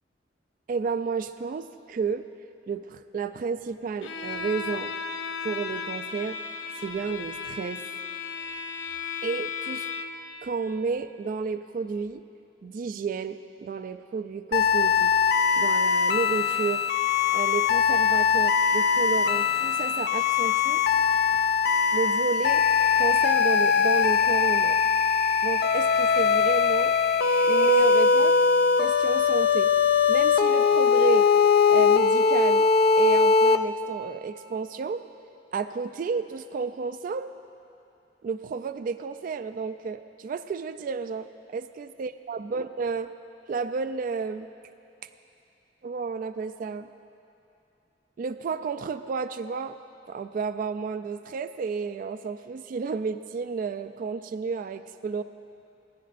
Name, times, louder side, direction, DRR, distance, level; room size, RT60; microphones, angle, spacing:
voice 1, 0.7-2.3 2.7-4.9 5.4-6.4 6.8-7.8 8.4-8.5 9.2-9.9 10.4-12.2 12.6-15.1 15.5-16.8 17.3-20.8 21.3-21.4 21.9-22.6 23.0-24.8 25.4-26.9 27.5-28.5 28.8-29.7 30.1-31.3 31.7-32.7 33.0-35.0 35.5-37.3 38.2-43.1 43.5-44.5 45.8-46.9 48.2-49.8 50.1-55.2, right 5 dB, 50° right, 11 dB, 0.3 m, -31 dB
Bowed string instrument, 4.0-10.3, left 6 dB, 85° left, 0.7 m, -35 dB
sound 1, 14.5-33.6, left 6 dB, 60° left, 0.4 m, -21 dB
sound 2, 22.4-27.8, right 1 dB, 25° left, 1.0 m, -37 dB
26.5 x 10.0 x 2.5 m, 2.7 s
head